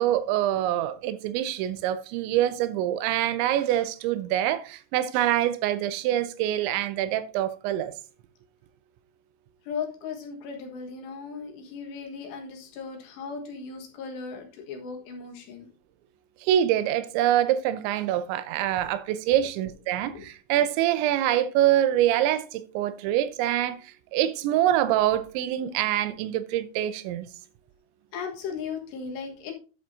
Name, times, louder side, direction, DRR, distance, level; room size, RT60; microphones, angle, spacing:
voice 1, 0.0-7.9 16.4-23.8 24.1-27.3, right 12 dB, 90° right, 3.1 m, -25 dB
voice 2, 9.7-15.7 20.1-20.3 28.1-29.5, left 5 dB, 75° left, 3.5 m, -37 dB
10.5 x 8.0 x 2.7 m
omnidirectional pair, 5.2 m